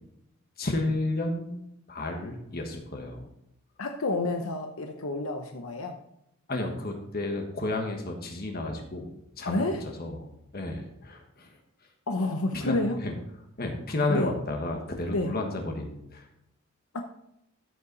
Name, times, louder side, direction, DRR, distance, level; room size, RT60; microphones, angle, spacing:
voice 1, 0.6-3.3 6.5-10.3 10.5-11.6 12.5-13.1 13.6-16.2, left 2 dB, 45° left, 3 dB, 1.4 m, -32 dB
voice 2, 3.8-6.0 9.4-9.8 12.1-13.0 14.1-14.3 15.1-15.3 16.9-17.0, left 2 dB, 85° left, 4 dB, 0.8 m, -29 dB
13.0 x 5.7 x 4.0 m, 0.81 s
head